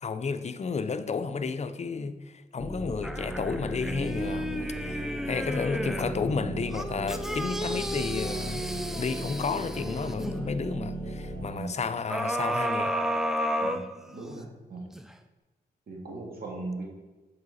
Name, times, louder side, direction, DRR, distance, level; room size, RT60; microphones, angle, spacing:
voice 1, 0.0-8.6 8.9-12.9, left 5 dB, 40° left, 11 dB, 0.6 m, -32 dB
sound 1, 2.6-11.5, right 1 dB, 15° left, 2.0 m, -36 dB
sound 2, 3.0-6.2 6.7-10.4 12.1-14.4 14.9-15.0, equal, 5° right, 0.6 m, -32 dB
voice 2, 13.6-14.8 15.9-16.8, right 2 dB, 65° right, -2 dB, 2.2 m, -39 dB
7.7 x 4.8 x 4.2 m, 1.1 s
cardioid pair, 70°, 17 cm